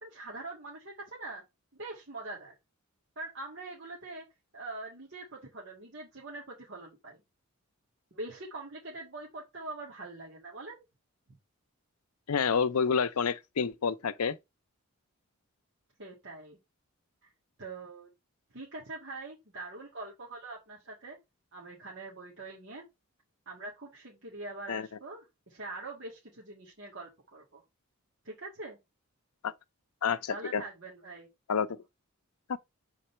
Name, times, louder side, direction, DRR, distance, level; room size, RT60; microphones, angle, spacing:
voice 1, 0.0-1.4 1.7-2.6 3.2-4.2 4.5-7.2 8.1-10.8 16.0-16.6 17.2-17.3 17.6-18.1 18.5-21.2 21.5-22.8 23.5-27.6 28.2-28.8 30.0-31.3, right 2 dB, 55° right, 1.9 m, -43 dB
voice 2, 12.3-14.4 24.7-24.9 29.4-29.5 30.0-30.6 31.5-31.8 32.5-32.6, left 6 dB, 85° left, 0.6 m, -29 dB
7.5 x 3.9 x 4.4 m
head